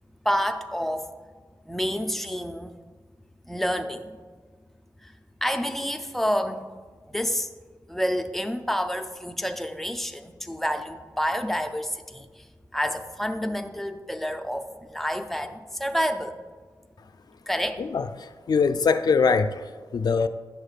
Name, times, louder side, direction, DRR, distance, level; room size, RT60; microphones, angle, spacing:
voice 1, 0.2-1.1 1.7-2.7 3.5-4.2 5.0-5.1 5.4-6.6 7.1-7.5 7.9-12.5 12.7-16.4 17.5-17.8, equal, 5° left, 6 dB, 0.4 m, -28 dB
voice 2, 17.8-20.3, left 5 dB, 65° left, 10 dB, 0.3 m, -23 dB
10.5 x 6.4 x 2.4 m, 1.5 s
wide cardioid pair, 105°, 7 cm